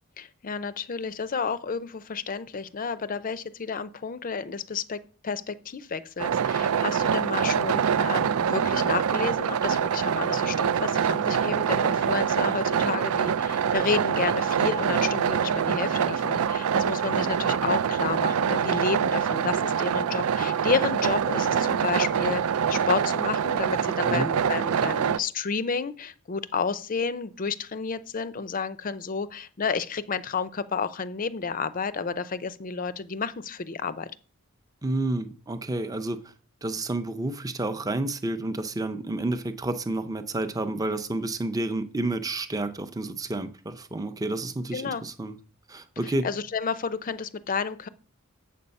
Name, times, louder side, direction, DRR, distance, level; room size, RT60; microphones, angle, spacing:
voice 1, 0.2-22.4 22.7-34.1 44.7-45.0 46.0-47.9, left 5 dB, 40° left, 0.5 m, -31 dB
sound 1, 6.2-25.2, right 7 dB, 75° right, 0.4 m, -25 dB
voice 2, 34.8-36.2 36.6-45.4 45.7-46.3, right 2 dB, 15° right, 0.6 m, -30 dB
7.6 x 6.8 x 5.3 m
head